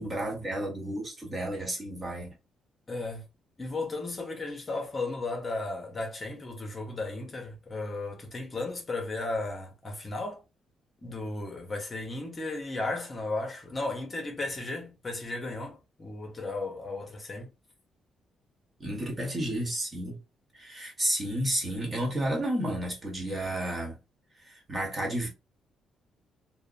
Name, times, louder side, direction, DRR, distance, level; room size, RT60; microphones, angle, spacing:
voice 1, 0.0-2.3 18.8-20.2 20.5-24.0 24.4-25.3, right 1 dB, 30° right, 1.2 m, -31 dB
voice 2, 2.9-3.3 3.6-10.4 11.0-17.5, left 2 dB, 30° left, 0.8 m, -35 dB
2.7 x 2.1 x 2.4 m
cardioid pair, 90°, 0 cm